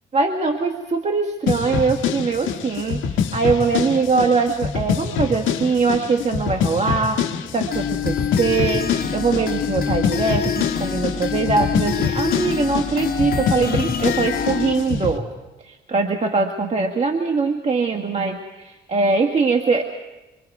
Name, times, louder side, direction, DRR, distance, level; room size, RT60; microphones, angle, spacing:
voice 1, 0.1-15.2 15.6-19.8, right 4 dB, 35° right, 4 dB, 1.5 m, -22 dB
sound 1, 1.5-15.2, left 7 dB, 80° left, 1.5 m, -25 dB
sound 2, 7.7-14.7, left 7 dB, 50° left, 2.5 m, -26 dB
26.0 x 24.5 x 4.7 m, 1.1 s
cardioid pair, 90°, 20 cm